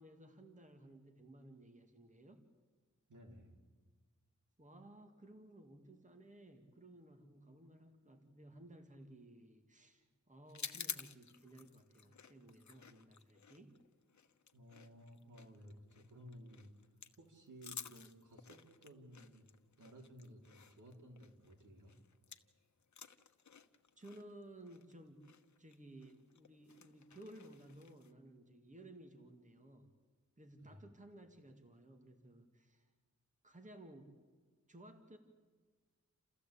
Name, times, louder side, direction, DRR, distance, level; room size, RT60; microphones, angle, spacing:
voice 1, 0.0-2.4 4.6-13.8 24.0-29.9 30.4-32.9 33.4-34.2 34.7-35.2, right 1 dB, 25° right, 5 dB, 2.1 m, -57 dB
voice 2, 3.1-3.5 14.5-16.7 17.2-19.5 19.8-21.9 30.6-30.8, equal, 80° right, 2 dB, 3.8 m, -56 dB
sound 1, 10.5-22.6 22.8-28.1, left 6 dB, 65° left, 1.0 m, -52 dB
29.0 x 14.5 x 8.5 m, 1.5 s
wide cardioid pair, 110°, 30 cm